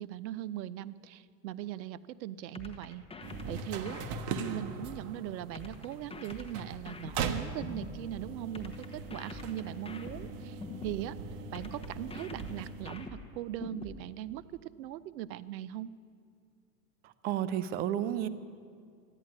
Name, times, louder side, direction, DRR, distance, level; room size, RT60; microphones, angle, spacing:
voice 1, 0.0-3.0 3.5-4.0 4.3-11.2 11.5-15.9, right 12 dB, 85° right, 16 dB, 0.7 m, -40 dB
sound 1, 2.5-5.0 5.5-8.0 8.5-11.0 11.5-14.0, left 3 dB, 10° left, 1.3 m, -45 dB
sound 2, 3.2-13.1, right 4 dB, 50° right, 1.3 m, -40 dB
voice 2, 17.2-18.3, right 11 dB, 20° right, 13 dB, 0.4 m, -31 dB
13.5 x 11.0 x 9.5 m, 2.2 s
supercardioid pair, 120°, 50 cm